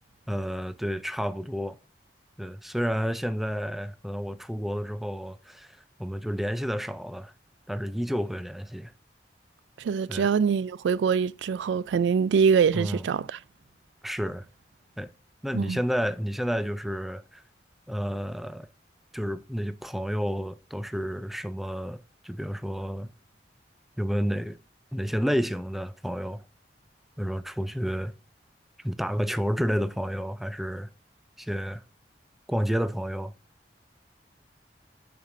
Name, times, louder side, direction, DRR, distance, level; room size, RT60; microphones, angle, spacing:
voice 1, 0.3-1.8 2.4-7.3 7.7-8.9 10.1-10.3 12.7-13.1 14.0-14.5 15.0-15.1 15.4-17.4 17.9-18.7 19.1-22.0 22.2-23.1 24.0-24.6 24.9-26.4 27.2-28.1 28.8-30.9 31.4-31.8 32.5-33.3, equal, ahead, 0.4 m, -30 dB
voice 2, 9.8-13.4 15.5-15.8, right 6 dB, 90° right, 0.3 m, -24 dB
7.4 x 5.2 x 2.5 m
head